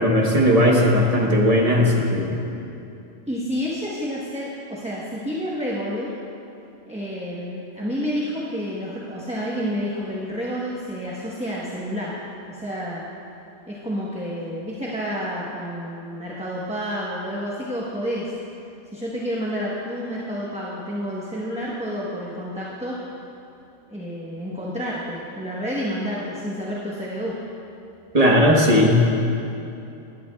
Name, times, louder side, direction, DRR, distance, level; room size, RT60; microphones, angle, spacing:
voice 1, 0.0-2.4 28.1-29.2, left 1 dB, 30° right, -1 dB, 1.2 m, -17 dB
voice 2, 3.3-6.1 6.8-12.2 12.5-13.0 13.7-18.3 18.8-23.0 23.9-27.3, equal, 5° right, -6 dB, 0.9 m, -29 dB
17.0 x 11.0 x 2.3 m, 2.7 s
omnidirectional pair, 1.3 m